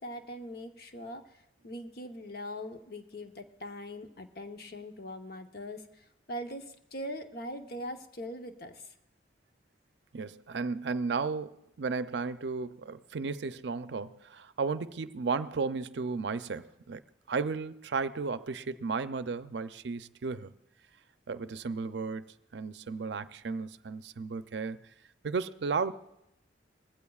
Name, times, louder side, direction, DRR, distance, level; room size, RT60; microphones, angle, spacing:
voice 1, 0.0-1.4 1.6-8.9, equal, 55° left, 0.9 m, -41 dB
voice 2, 10.1-17.0 17.3-20.5 21.3-22.2 22.5-24.8 25.2-25.9, right 4 dB, 70° right, 0.5 m, -34 dB
20.0 x 15.5 x 2.4 m
head